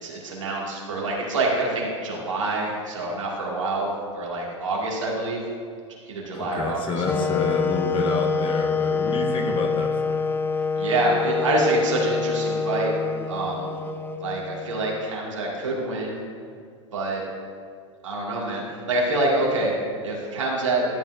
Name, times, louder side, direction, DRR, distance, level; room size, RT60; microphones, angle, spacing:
voice 1, 0.0-5.4 6.1-7.3 10.8-12.9 13.3-13.7 14.2-16.2 16.9-17.2 18.0-19.7 20.0-20.8, right 2 dB, 80° right, -3 dB, 2.3 m, -26 dB
voice 2, 6.3-10.2, left 4 dB, 30° left, 3 dB, 1.2 m, -28 dB
sound 1, 7.0-15.0, left 4 dB, 15° left, 0.4 m, -26 dB
13.0 x 9.0 x 2.6 m, 2.2 s
figure-of-eight pair, 90°, 16 cm